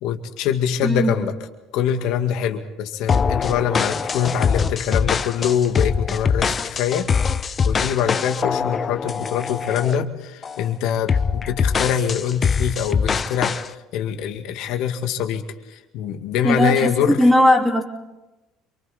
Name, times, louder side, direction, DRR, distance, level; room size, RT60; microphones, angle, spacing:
voice 1, 0.0-1.3 1.7-7.1 7.6-15.4 15.7-17.2, left 8 dB, 70° left, 6 dB, 2.1 m, -24 dB
voice 2, 0.8-1.1 16.4-17.8, equal, 5° right, -6 dB, 3.3 m, -17 dB
sound 1, 3.1-10.0 10.4-10.7 11.1-13.7, left 6 dB, 35° left, 0.8 m, -23 dB
28.0 x 24.0 x 4.3 m, 1.0 s
supercardioid pair, 85°, 0 cm